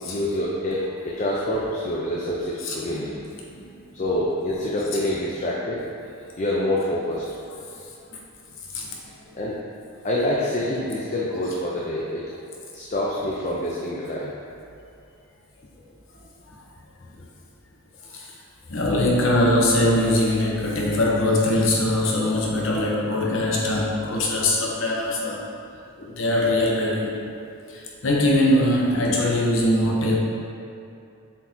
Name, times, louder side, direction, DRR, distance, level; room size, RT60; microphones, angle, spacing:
voice 1, 0.0-3.1 3.9-5.8 6.4-7.2 9.3-9.6 10.0-12.2 12.7-14.3 17.2-17.3 26.0-26.1, left 1 dB, 35° left, -5 dB, 0.5 m, -26 dB
voice 2, 2.6-3.0 3.5-3.6 8.7-9.0 18.1-18.3 18.7-25.4 26.1-27.2 27.7-30.2, left 1 dB, 60° left, -2 dB, 0.9 m, -22 dB
7.2 x 4.6 x 2.8 m, 2.6 s
head